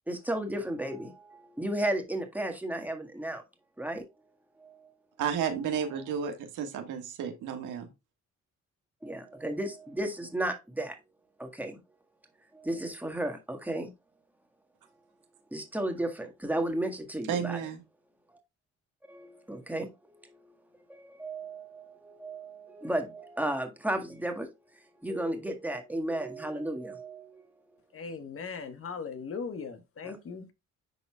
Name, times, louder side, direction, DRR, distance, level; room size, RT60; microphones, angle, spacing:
voice 1, 0.1-3.4 3.8-4.0 4.6-4.9 9.0-11.0 11.4-11.8 12.5-13.9 15.5-17.6 18.3-18.4 19.1-20.4 20.9-24.5 25.0-27.4 30.0-30.2, right 1 dB, 5° right, 1.7 m, -34 dB
voice 2, 5.2-7.9 17.3-17.8, right 8 dB, 85° right, 1.7 m, -32 dB
voice 3, 27.9-30.5, left 5 dB, 45° left, 1.4 m, -39 dB
10.5 x 4.0 x 2.3 m
cardioid pair, 90°, 30 cm